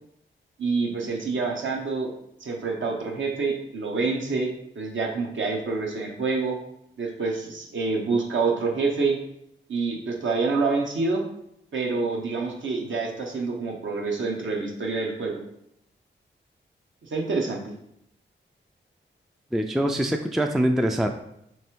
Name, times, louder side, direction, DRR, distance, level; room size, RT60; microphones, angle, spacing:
voice 1, 0.6-2.1 2.4-6.6 7.0-9.2 9.7-11.2 11.7-15.4 17.0-17.7, right 4 dB, 70° right, 0 dB, 0.9 m, -27 dB
voice 2, 19.5-21.1, equal, ahead, 5 dB, 0.3 m, -23 dB
3.4 x 3.2 x 4.4 m, 0.77 s
cardioid pair, 50°, 20 cm